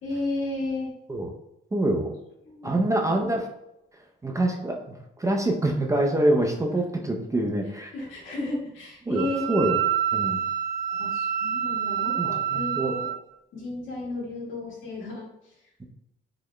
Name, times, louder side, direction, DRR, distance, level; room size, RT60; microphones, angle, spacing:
voice 1, 0.0-0.9 2.4-2.8 7.9-9.7 10.9-13.1 13.5-15.8, left 2 dB, 75° left, -3 dB, 1.4 m, -33 dB
voice 2, 1.7-2.1 2.6-3.5 4.2-7.9 9.1-9.8 10.1-10.4 12.2-12.9, right 1 dB, 15° right, 2 dB, 0.5 m, -25 dB
Wind instrument woodwind instrument, 9.1-13.2, right 9 dB, 90° right, 0.4 m, -27 dB
3.9 x 2.1 x 3.0 m, 0.85 s
cardioid pair, 90°, 20 cm